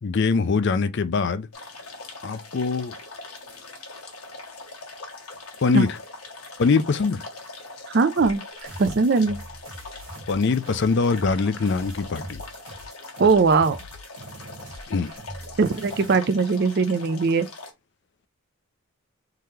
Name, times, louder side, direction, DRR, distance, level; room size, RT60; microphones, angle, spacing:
voice 1, 0.0-1.5 2.2-3.0 5.6-6.0 6.6-7.2 10.3-12.4 14.9-15.1, left 4 dB, 50° left, 0.4 m, -23 dB
sound 1, 1.5-17.7, left 3 dB, 85° left, 1.2 m, -41 dB
voice 2, 7.9-8.4 8.8-9.4 13.2-13.8 15.6-17.5, right 4 dB, 50° right, 0.4 m, -20 dB
sound 2, 8.2-16.2, right 1 dB, 70° right, 1.6 m, -42 dB
3.7 x 2.8 x 3.1 m
head